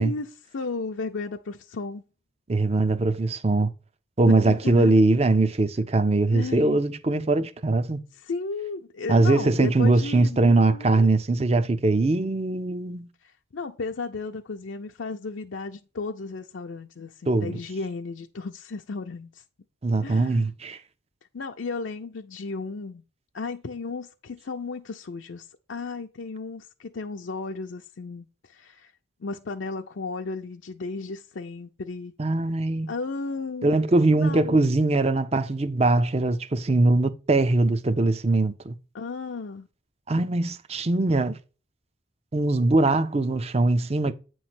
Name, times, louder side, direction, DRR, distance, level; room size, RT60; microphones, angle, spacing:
voice 1, 0.0-2.0 4.3-4.9 6.2-6.8 8.2-11.1 13.2-19.4 20.0-20.5 21.3-23.0 23.3-28.9 29.2-32.1 32.9-33.7 34.1-34.6 38.9-39.7, left 4 dB, 70° left, 0.5 m, -34 dB
voice 2, 2.5-3.7 4.2-8.0 9.1-13.1 17.3-17.6 19.8-20.8 32.2-32.9 33.6-38.8 40.1-41.4 42.3-44.1, right 2 dB, 30° right, 0.5 m, -21 dB
8.6 x 3.1 x 5.8 m
head